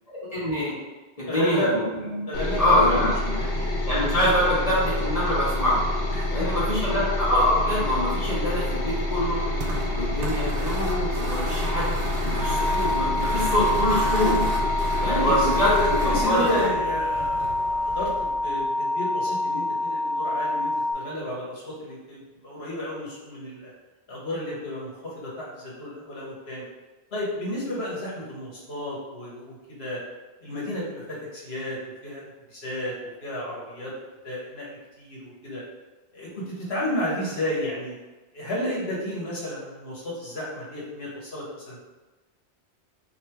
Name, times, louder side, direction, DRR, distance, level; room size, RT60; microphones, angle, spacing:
voice 1, 0.1-0.7 1.2-1.8 2.1-2.3 2.6-3.3 3.9-5.8 6.3-9.4 9.9-14.5 15.0-16.6, left 1 dB, 35° left, -8 dB, 1.2 m, -25 dB
voice 2, 1.3-1.7 2.3-3.7 6.1-6.6 15.0-15.5 15.7-23.7 24.1-26.6 27.1-30.0 30.4-33.9 34.2-35.6 36.1-37.9 38.3-41.8, left 1 dB, 65° left, -5 dB, 1.5 m, -32 dB
sound 1, 2.3-16.2, left 1 dB, 85° left, 1.3 m, -27 dB
sound 2, 9.2-18.6, right 2 dB, 90° right, 1.0 m, -34 dB
sound 3, 12.4-20.9, left 2 dB, 40° right, 0.5 m, -27 dB
3.2 x 3.0 x 4.4 m, 1.2 s
omnidirectional pair, 1.1 m